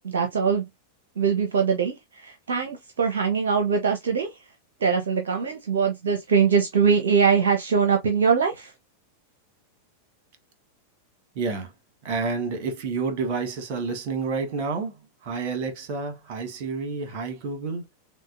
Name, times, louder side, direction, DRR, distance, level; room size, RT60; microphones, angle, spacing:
voice 1, 0.0-0.6 1.2-4.3 4.8-8.7, right 6 dB, 65° right, 0.7 m, -22 dB
voice 2, 11.3-11.7 12.0-17.8, right 4 dB, 45° right, 1.3 m, -29 dB
6.2 x 2.2 x 2.5 m
figure-of-eight pair, 90°, 0 cm